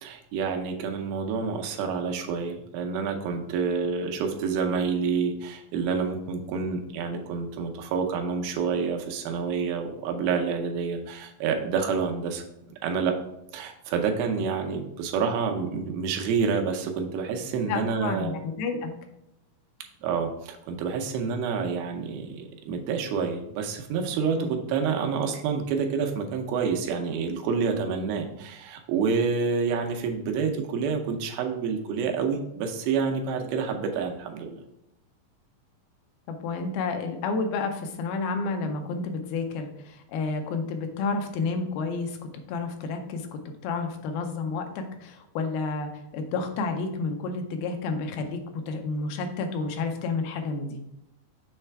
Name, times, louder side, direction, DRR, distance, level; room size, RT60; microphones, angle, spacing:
voice 1, 0.0-13.1 13.5-18.3 20.0-34.6, right 5 dB, 90° right, 4 dB, 2.6 m, -28 dB
voice 2, 17.7-18.9 24.4-24.5 36.3-42.2 42.5-48.4 48.7-50.8, left 4 dB, 90° left, 5 dB, 2.6 m, -30 dB
7.0 x 3.2 x 4.5 m, 0.84 s
omnidirectional pair, 4.1 m